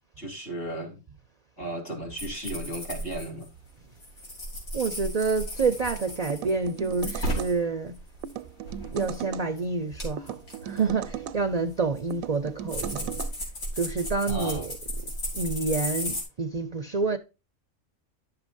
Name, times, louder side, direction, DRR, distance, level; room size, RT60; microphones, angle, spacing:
voice 1, 0.2-1.0 1.6-3.5 14.3-14.7, right 1 dB, 55° left, 3.2 m, -35 dB
sound 1, 2.2-3.7 4.0-7.6 7.9-9.2 9.6-9.7 10.0-16.2, equal, 85° left, 3.9 m, -35 dB
voice 2, 4.7-8.0 8.9-13.2 13.8-14.7 15.3-17.2, right 4 dB, 50° right, 0.4 m, -28 dB
sound 2, 6.3-7.5 8.2-9.5 10.2-11.4 12.1-13.3, right 10 dB, 85° right, 1.0 m, -37 dB
11.0 x 6.7 x 2.5 m
omnidirectional pair, 1.4 m